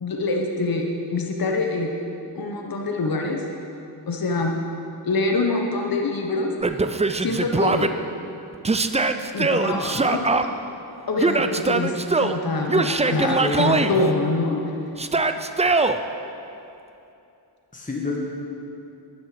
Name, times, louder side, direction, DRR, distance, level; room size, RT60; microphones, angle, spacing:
voice 1, 0.0-1.9 2.3-3.4 4.1-4.6 5.0-6.5 7.2-7.9 9.3-10.5 11.1-11.9 12.2-14.7, left 3 dB, 50° left, 1 dB, 1.1 m, -25 dB
Yell, 6.6-7.9 8.6-10.4 11.2-12.4 12.7-13.9 15.0-16.0, right 3 dB, 15° right, 0.4 m, -22 dB
voice 2, 13.0-14.1 17.7-18.2, left 2 dB, 15° left, -2 dB, 1.4 m, -28 dB
12.0 x 9.5 x 5.0 m, 2.7 s
wide cardioid pair, 85°, 45 cm